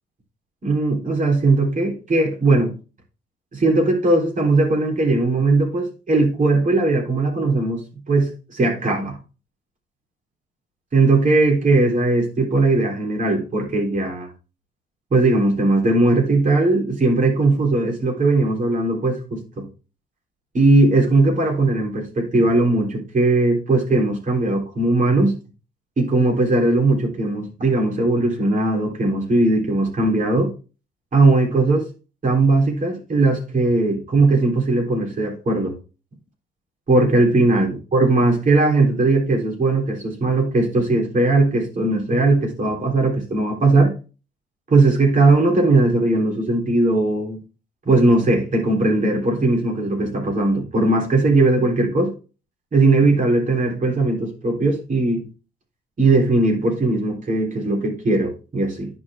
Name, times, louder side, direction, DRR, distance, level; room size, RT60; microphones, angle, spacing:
voice 1, 0.6-2.7 3.5-9.2 10.9-14.3 15.1-19.6 20.5-25.3 26.0-30.5 31.1-31.9 32.2-35.7 36.9-43.9 44.7-47.4 47.8-52.1 52.7-55.3 56.0-58.9, right 2 dB, 40° right, 3.5 m, -19 dB
10.5 x 4.5 x 3.6 m
cardioid pair, 90°, 20 cm